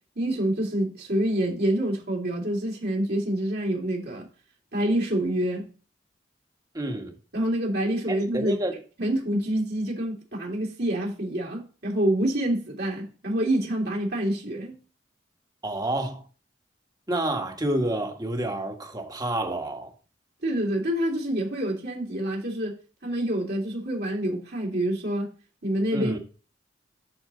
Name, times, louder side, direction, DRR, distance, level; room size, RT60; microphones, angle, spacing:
voice 1, 0.1-4.3 4.7-5.7 7.3-8.6 9.0-14.8 20.4-25.3 25.6-26.2, right 1 dB, 60° right, 3.2 m, -27 dB
voice 2, 6.7-7.1 8.1-8.8 15.6-16.2 17.1-19.9 25.9-26.2, right 1 dB, 20° right, 1.6 m, -29 dB
12.0 x 4.6 x 3.8 m
head